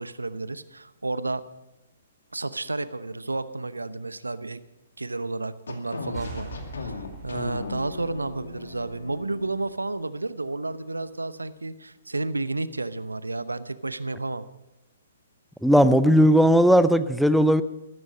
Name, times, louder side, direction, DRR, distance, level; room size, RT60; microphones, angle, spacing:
voice 1, 0.0-1.4 2.3-4.6 5.0-14.4, right 2 dB, 85° right, 15 dB, 0.8 m, -31 dB
sound 1, 5.7-9.8, left 3 dB, 70° left, 2.2 m, -37 dB
sound 2, 6.1-9.6, right 3 dB, 15° right, 5.7 m, -43 dB
voice 2, 15.6-17.6, equal, ahead, 12 dB, 0.6 m, -17 dB
14.0 x 13.5 x 5.4 m, 0.93 s
figure-of-eight pair, 125°, 0 cm